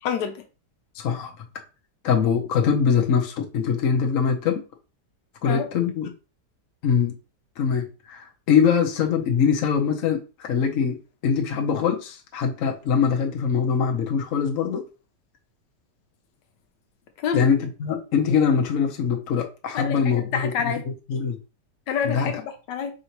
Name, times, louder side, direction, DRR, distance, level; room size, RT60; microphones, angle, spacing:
voice 1, 0.0-0.4 5.4-5.7 17.2-17.5 19.7-20.8 21.9-22.9, left 7 dB, 90° left, 1.4 m, -28 dB
voice 2, 1.0-1.3 2.0-4.6 5.4-6.1 6.8-7.1 7.6-14.8 17.3-20.7 21.1-21.4 22.0-22.3, left 6 dB, 55° left, 1.1 m, -23 dB
3.8 x 2.7 x 4.5 m
omnidirectional pair, 1.8 m